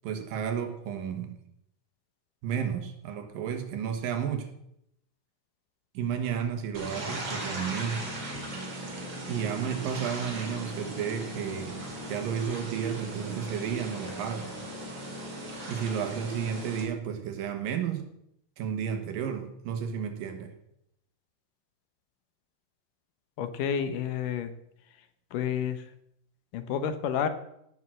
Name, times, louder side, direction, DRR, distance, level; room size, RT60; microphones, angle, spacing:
voice 1, 0.0-1.4 2.4-4.5 5.9-8.1 9.3-14.5 15.7-18.1 18.6-20.5, right 8 dB, 75° right, 7 dB, 3.1 m, -32 dB
sound 1, 6.7-16.8, right 1 dB, 35° right, 3.3 m, -38 dB
voice 2, 23.4-24.5 25.3-25.9 26.5-27.3, left 8 dB, 75° left, 10 dB, 2.5 m, -30 dB
16.5 x 6.5 x 7.7 m, 0.77 s
omnidirectional pair, 4.0 m